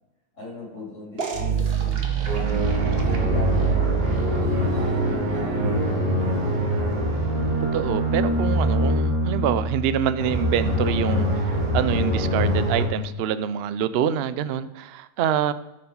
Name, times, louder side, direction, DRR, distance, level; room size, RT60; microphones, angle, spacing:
voice 1, 0.3-7.1, left 2 dB, 50° left, -4 dB, 4.4 m, -39 dB
sound 1, 1.2-7.8, right 7 dB, 45° right, 1.2 m, -27 dB
sound 2, 2.3-12.9, equal, 60° right, 2.9 m, -24 dB
voice 2, 7.7-15.5, right 9 dB, 85° right, 13 dB, 0.5 m, -26 dB
12.5 x 4.7 x 5.3 m, 0.98 s
omnidirectional pair, 1.6 m